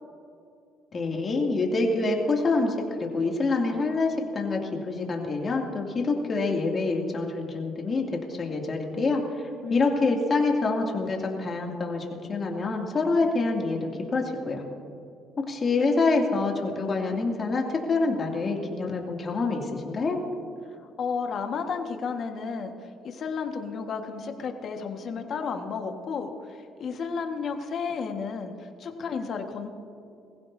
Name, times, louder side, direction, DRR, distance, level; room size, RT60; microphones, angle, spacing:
voice 1, 0.9-9.4 9.7-14.6 15.4-20.2, left 3 dB, 35° left, 0 dB, 2.6 m, -26 dB
voice 2, 9.6-10.1 20.7-29.7, left 5 dB, 50° left, 5 dB, 1.6 m, -33 dB
21.5 x 15.5 x 2.8 m, 2.6 s
cardioid pair, 105°, 0 cm